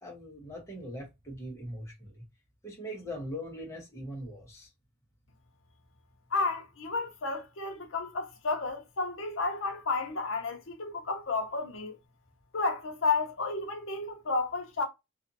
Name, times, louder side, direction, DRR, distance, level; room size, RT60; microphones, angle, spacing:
voice 1, 0.0-2.2 2.6-4.7, equal, 15° left, 0.9 m, -41 dB
voice 2, 6.3-12.0 12.5-14.8, left 3 dB, 65° left, 0.7 m, -32 dB
2.5 x 2.5 x 2.6 m
head